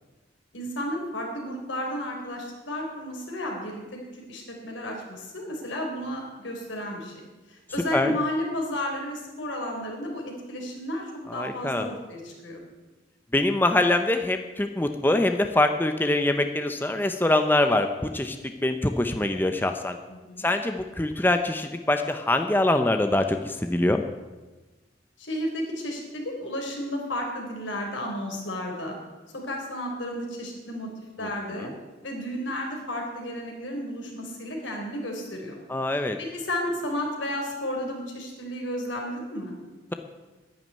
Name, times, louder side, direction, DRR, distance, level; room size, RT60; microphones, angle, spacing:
voice 1, 0.5-3.8 4.3-7.1 7.5-12.6 20.1-20.5 25.2-29.0 29.5-30.9 31.2-31.7 32.0-35.6 36.2-39.5, left 1 dB, 85° left, 1 dB, 3.9 m, -32 dB
voice 2, 11.3-11.9 13.3-18.4 18.6-20.0 20.4-24.0 31.6-31.7 35.7-36.2, left 1 dB, 10° left, 7 dB, 0.7 m, -24 dB
11.0 x 10.5 x 9.4 m, 1.2 s
head